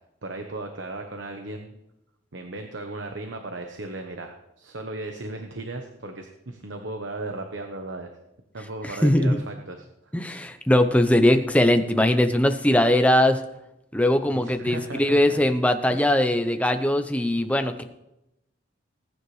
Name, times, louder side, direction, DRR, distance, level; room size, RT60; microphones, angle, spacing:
voice 1, 0.2-1.7 2.3-8.1 8.5-10.3 14.3-15.4 15.9-16.1, right 2 dB, 70° right, 4 dB, 1.1 m, -36 dB
voice 2, 9.0-9.4 10.1-13.4 13.9-17.8, left 1 dB, 5° left, 8 dB, 0.8 m, -20 dB
20.0 x 9.7 x 3.3 m, 0.88 s
head